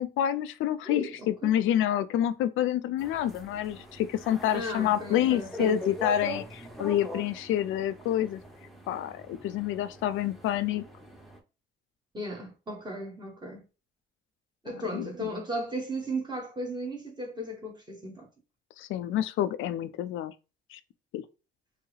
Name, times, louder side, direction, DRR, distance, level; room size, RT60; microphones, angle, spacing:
voice 1, 0.0-8.4 8.9-10.8 14.9-15.3 18.8-20.3 20.7-20.8 21.1-21.2, left 11 dB, 85° left, 0.4 m, -28 dB
voice 2, 0.8-1.6 4.5-5.8 12.1-13.6 14.6-18.3, equal, 20° right, 1.2 m, -36 dB
sound 1, 3.0-11.4, left 2 dB, ahead, 0.8 m, -39 dB
4.6 x 2.0 x 3.1 m
cardioid pair, 90°, 20 cm